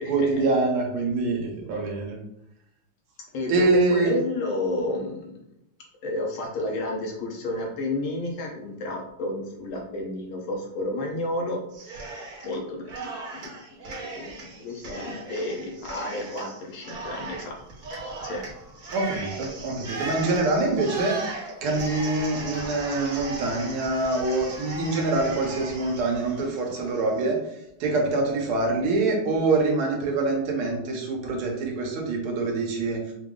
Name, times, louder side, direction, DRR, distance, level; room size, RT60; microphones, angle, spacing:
voice 1, 0.1-2.2 3.5-4.2 18.9-21.2 21.6-27.4 27.8-33.0, right 3 dB, 80° right, 0 dB, 1.8 m, -25 dB
voice 2, 3.3-3.7 3.9-5.3 6.0-11.6 12.4-13.5 14.0-17.5 18.2-18.4, left 2 dB, 70° left, 0 dB, 1.7 m, -31 dB
Cheering, 11.7-12.6 12.9-27.2, right 3 dB, 50° right, 1.4 m, -37 dB
5.1 x 2.0 x 3.6 m, 0.80 s
omnidirectional pair, 2.4 m